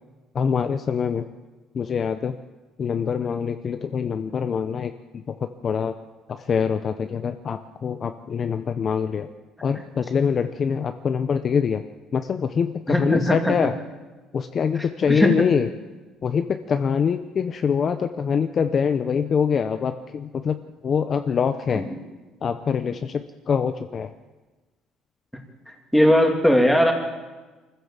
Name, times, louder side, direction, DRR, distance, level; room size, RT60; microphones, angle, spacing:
voice 1, 0.3-1.3 1.7-2.4 2.8-5.9 6.3-9.3 9.6-11.8 12.1-13.7 14.3-15.7 16.2-21.8 22.4-24.1, left 6 dB, 35° left, 8 dB, 0.7 m, -24 dB
voice 2, 12.9-13.6 15.1-15.4 21.7-21.8 25.9-26.9, equal, ahead, 2 dB, 2.7 m, -18 dB
25.0 x 15.0 x 7.4 m, 1.3 s
cardioid pair, 150°, 0 cm